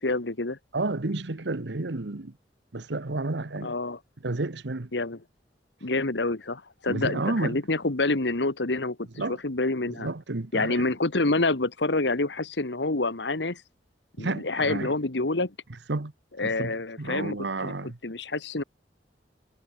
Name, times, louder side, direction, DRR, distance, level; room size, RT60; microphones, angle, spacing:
voice 1, 0.0-0.6 3.6-4.0 4.9-5.2 5.8-10.1 10.5-13.6 14.2-15.5 16.4-18.6, left 2 dB, 80° left, 1.7 m, -27 dB
voice 2, 0.7-2.3 2.7-3.7 4.2-4.9 6.9-7.6 9.2-9.4 9.9-10.9 14.2-14.9 15.9-16.1 16.4-16.7 17.0-18.0, right 2 dB, 80° right, 1.2 m, -31 dB
head